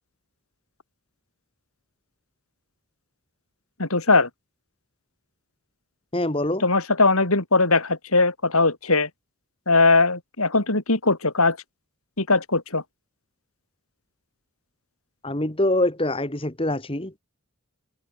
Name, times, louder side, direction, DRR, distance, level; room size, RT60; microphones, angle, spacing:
voice 1, 3.8-4.3 6.6-9.1 9.7-11.6 12.2-12.8, left 3 dB, 75° left, 5.2 m, -20 dB
voice 2, 6.1-6.6 15.2-17.1, left 1 dB, 25° left, 1.8 m, -24 dB
head